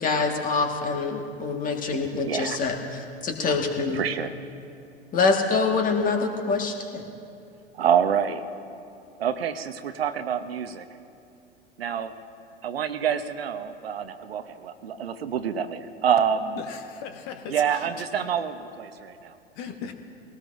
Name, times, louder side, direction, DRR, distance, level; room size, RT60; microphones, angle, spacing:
voice 1, 0.0-4.0 5.1-7.0, left 4 dB, 25° left, 3 dB, 1.7 m, -25 dB
voice 2, 2.3-2.6 3.9-4.3 7.7-8.4 9.2-10.8 11.8-12.1 12.6-16.6 17.5-19.4, right 8 dB, 70° right, 10 dB, 0.9 m, -27 dB
voice 3, 16.6-17.9 19.5-19.9, left 7 dB, 45° left, 6 dB, 1.3 m, -38 dB
21.0 x 18.0 x 2.6 m, 2.5 s
figure-of-eight pair, 90°, 31 cm